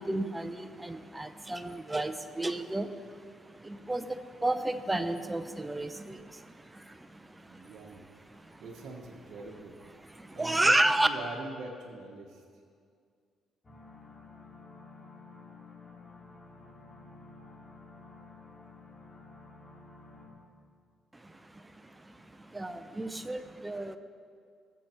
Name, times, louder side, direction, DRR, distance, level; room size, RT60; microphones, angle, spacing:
voice 1, 0.0-7.7 8.3-8.6 10.2-11.1 21.1-24.0, right 1 dB, 15° right, 9 dB, 0.8 m, -32 dB
voice 2, 7.5-8.0 8.6-9.7 10.3-12.4, right 3 dB, 70° right, -2 dB, 1.2 m, -43 dB
sound 1, 13.6-20.3, left 3 dB, 30° left, 2.6 m, -51 dB
19.5 x 7.1 x 4.5 m, 2.2 s
cardioid pair, 90°, 0 cm